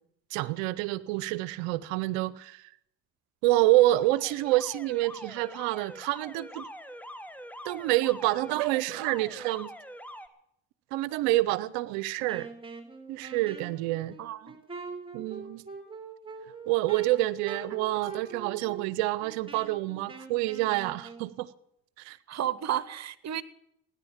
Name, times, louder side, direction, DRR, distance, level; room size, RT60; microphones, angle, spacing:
voice 1, 0.3-2.6 3.4-6.7 7.6-9.7 10.9-12.5 13.1-14.1 15.1-15.6 16.7-21.5 22.0-22.2, right 17 dB, 90° right, 0.7 m, -27 dB
Alarm, 3.8-10.3, equal, 5° left, 1.5 m, -44 dB
Wind instrument woodwind instrument, 12.3-21.3, right 4 dB, 15° right, 3.5 m, -43 dB
voice 2, 14.2-14.6 17.7-17.8 22.3-23.4, right 11 dB, 55° right, 1.1 m, -32 dB
17.0 x 10.5 x 7.3 m
supercardioid pair, 65°, 32 cm